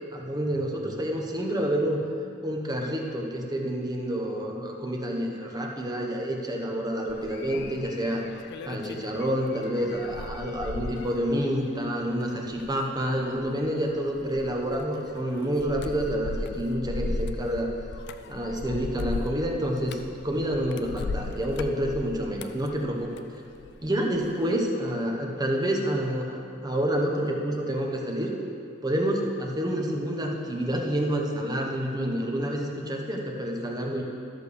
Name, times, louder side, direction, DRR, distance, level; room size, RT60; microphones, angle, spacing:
voice 1, 0.1-2.0 2.4-8.2 8.7-17.7 18.3-23.1 23.8-28.3 28.8-34.0, equal, 20° right, 0 dB, 0.9 m, -28 dB
sound 1, 7.1-23.8 24.1-24.6, left 3 dB, 60° left, 0.4 m, -37 dB
13.0 x 6.8 x 3.4 m, 2.4 s
head